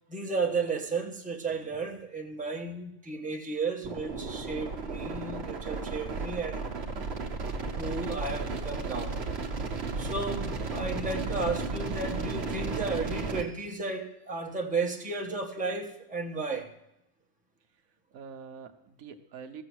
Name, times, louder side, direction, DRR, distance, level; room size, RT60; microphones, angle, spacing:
voice 1, 0.1-6.6 7.6-9.2 9.9-16.7, right 3 dB, 5° right, 1.0 m, -33 dB
voice 2, 1.5-1.8 18.1-19.6, right 6 dB, 75° right, 1.2 m, -47 dB
sound 1, 3.8-13.4, right 4 dB, 50° right, 1.2 m, -34 dB
15.0 x 6.8 x 6.2 m
omnidirectional pair, 1.5 m